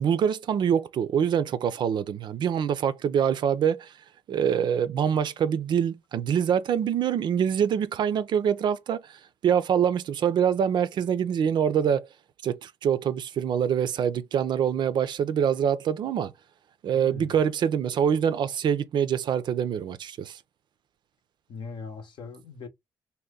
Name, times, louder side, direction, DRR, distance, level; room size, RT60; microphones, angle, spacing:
voice 1, 0.0-3.9 4.3-12.1 12.4-16.3 16.8-20.4, right 8 dB, 60° right, 0.4 m, -25 dB
voice 2, 16.9-17.4 21.5-22.7, left 5 dB, 65° left, 0.8 m, -40 dB
2.7 x 2.1 x 3.5 m
hypercardioid pair, 50°, 9 cm